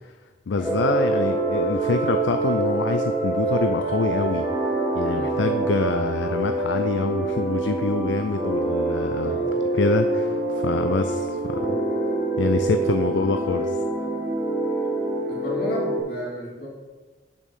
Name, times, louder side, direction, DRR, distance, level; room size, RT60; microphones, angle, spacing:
voice 1, 0.5-4.5 5.0-9.4 9.7-11.8 12.4-13.8, left 4 dB, 75° left, 8 dB, 0.4 m, -26 dB
sound 1, 0.6-16.0, right 2 dB, 15° right, 1.7 m, -25 dB
voice 2, 5.1-5.5 9.2-9.6 15.3-16.7, equal, 55° left, -4 dB, 2.9 m, -34 dB
7.0 x 5.2 x 7.2 m, 1.3 s
head